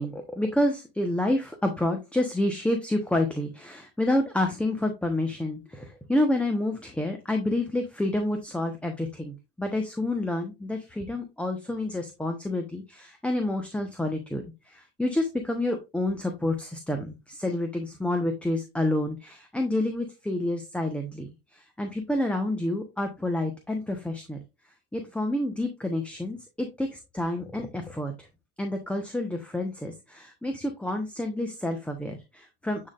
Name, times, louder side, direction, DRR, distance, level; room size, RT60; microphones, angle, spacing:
voice 1, 0.0-24.4 24.9-28.3 28.6-32.9, left 1 dB, 5° left, 4 dB, 1.1 m, -29 dB
9.9 x 3.9 x 2.5 m, 0.25 s
hypercardioid pair, 75°, 32 cm